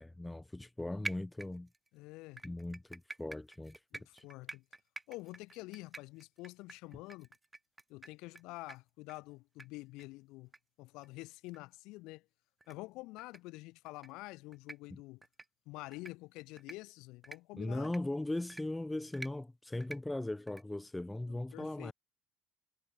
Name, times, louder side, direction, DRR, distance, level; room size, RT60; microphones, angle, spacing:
voice 1, 0.0-1.7 2.4-3.8 4.1-4.2 14.9-15.0 17.5-21.9, left 1 dB, 5° left, 0.5 m, -39 dB
sound 1, 1.0-1.9 2.4-8.4 8.7-8.8 9.1-9.2 9.6-9.7 10.0-10.1 10.5-10.6 11.0-11.1 11.5-11.6 12.6-12.7 13.2-13.4 13.9-14.1 14.5-14.8 15.2-15.5 15.9-16.1 16.6-16.8 17.2-17.4 17.8-18.0 18.5-18.6 19.1-19.3 19.8-20.0 20.5-20.6, right 2 dB, 10° right, 3.8 m, -46 dB
voice 2, 1.9-2.4 3.9-4.6 5.1-7.3 7.9-10.5 10.8-12.3 12.7-15.2 15.6-17.9 21.3-21.9, left 21 dB, 75° left, 1.5 m, -48 dB
cardioid pair, 145°, 0 cm